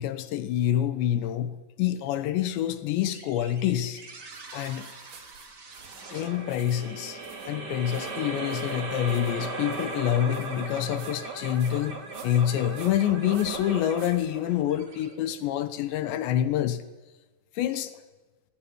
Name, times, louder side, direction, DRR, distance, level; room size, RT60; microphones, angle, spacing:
voice 1, 0.0-4.0 4.5-4.9 6.1-7.2 7.5-16.8 17.6-18.0, left 11 dB, 75° left, 3.1 m, -27 dB
sound 1, 3.1-15.7, right 3 dB, 35° right, 1.8 m, -38 dB
sound 2, 4.3-14.8, right 6 dB, 75° right, 5.5 m, -53 dB
20.0 x 18.5 x 9.4 m
omnidirectional pair, 5.5 m